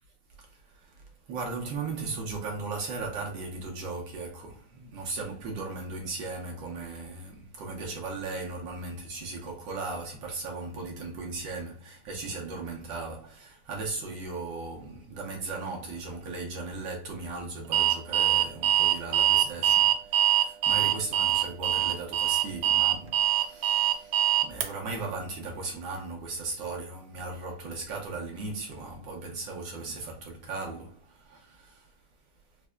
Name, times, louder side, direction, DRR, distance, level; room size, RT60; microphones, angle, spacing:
voice 1, 0.4-31.9, right 3 dB, 65° right, 1.3 m, -37 dB
Alarm, 17.7-24.7, right 11 dB, 85° right, 1.5 m, -23 dB
4.4 x 2.6 x 2.2 m
omnidirectional pair, 2.4 m